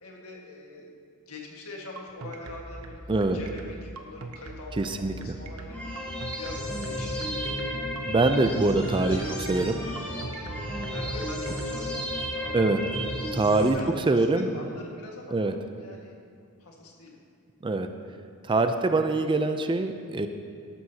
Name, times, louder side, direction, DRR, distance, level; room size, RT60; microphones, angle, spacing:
voice 1, 0.0-0.9 1.3-6.1 6.4-7.5 8.7-9.5 10.9-13.1 13.5-16.2 16.6-17.2, left 2 dB, 70° left, -1 dB, 1.7 m, -44 dB
sound 1, 2.0-11.7, right 3 dB, 75° right, 0.9 m, -42 dB
voice 2, 4.8-5.4 8.1-9.2 9.5-9.8 12.5-12.8 13.3-13.8 14.1-14.6 15.3-15.5 17.6-17.9 18.4-20.3, right 2 dB, 20° right, 7 dB, 0.4 m, -24 dB
sound 2, 5.7-13.7, equal, 10° left, 2.6 m, -33 dB
12.5 x 12.0 x 2.8 m, 2.2 s
head